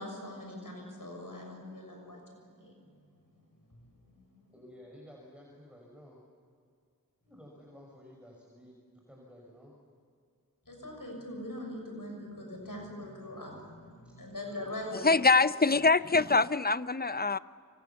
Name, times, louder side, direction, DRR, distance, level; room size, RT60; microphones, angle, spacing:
voice 1, 0.0-4.5 10.7-15.1, left 1 dB, 70° left, 1 dB, 6.5 m, -43 dB
voice 2, 4.5-6.2 7.2-9.8 14.0-14.2, left 1 dB, 5° right, -2 dB, 5.6 m, -53 dB
voice 3, 15.0-17.4, left 4 dB, 30° left, 15 dB, 0.6 m, -24 dB
28.5 x 24.5 x 7.1 m, 2.4 s
wide cardioid pair, 40°, 35 cm